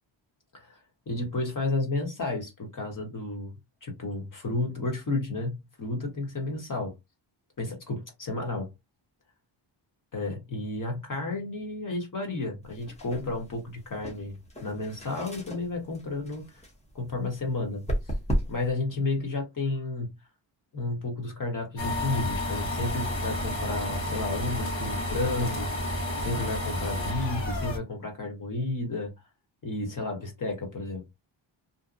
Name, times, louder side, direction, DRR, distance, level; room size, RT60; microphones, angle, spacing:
voice 1, 1.1-3.5 3.8-6.9 7.6-8.7 10.1-14.3 14.6-16.6 16.9-17.8 18.5-20.1 20.7-29.1 29.6-31.1, left 2 dB, 40° left, 1.1 m, -32 dB
sound 1, 12.6-18.8, equal, 15° left, 0.7 m, -35 dB
sound 2, 21.8-27.8, left 1 dB, 70° left, 1.4 m, -31 dB
2.7 x 2.1 x 2.5 m
wide cardioid pair, 130°, 47 cm